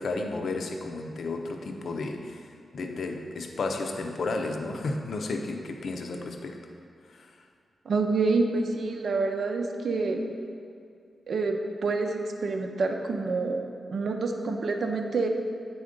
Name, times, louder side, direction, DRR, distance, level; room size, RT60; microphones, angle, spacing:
voice 1, 0.0-2.5 2.7-6.6 7.1-7.3, left 3 dB, 65° left, 3 dB, 0.6 m, -32 dB
voice 2, 7.9-10.2 11.3-13.6 13.9-15.3, right 3 dB, 60° right, 4 dB, 0.6 m, -27 dB
8.4 x 4.0 x 5.1 m, 2.4 s
wide cardioid pair, 135°, 0 cm